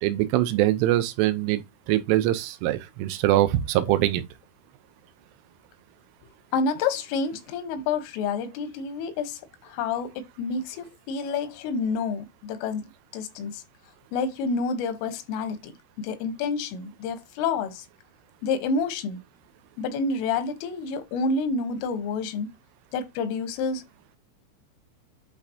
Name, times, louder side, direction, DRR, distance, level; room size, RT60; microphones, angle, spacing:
voice 1, 0.0-1.6 1.9-4.2, right 14 dB, 85° right, 3.4 m, -23 dB
voice 2, 6.5-13.6 14.1-17.9 18.4-19.2 19.8-22.5 22.9-23.8, left 4 dB, 90° left, 3.8 m, -29 dB
11.5 x 4.2 x 2.8 m
omnidirectional pair, 5.6 m